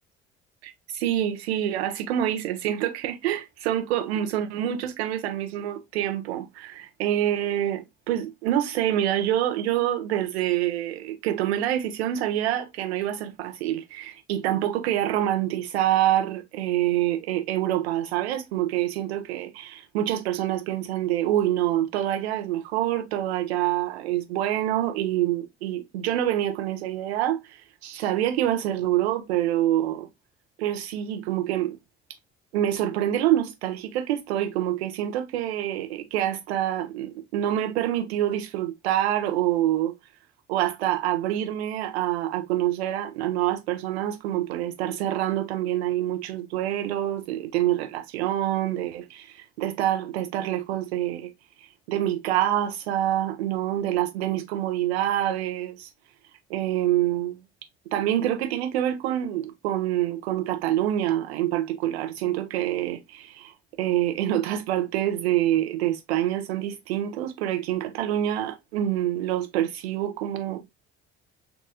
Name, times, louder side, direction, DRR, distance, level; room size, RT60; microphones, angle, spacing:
voice 1, 0.6-30.1 30.6-31.8 32.5-39.9 40.5-51.3 51.9-55.9 56.5-57.4 57.9-63.5 63.8-70.6, right 12 dB, 75° right, 0.8 m, -26 dB
3.9 x 2.4 x 2.7 m
figure-of-eight pair, 50°, 32 cm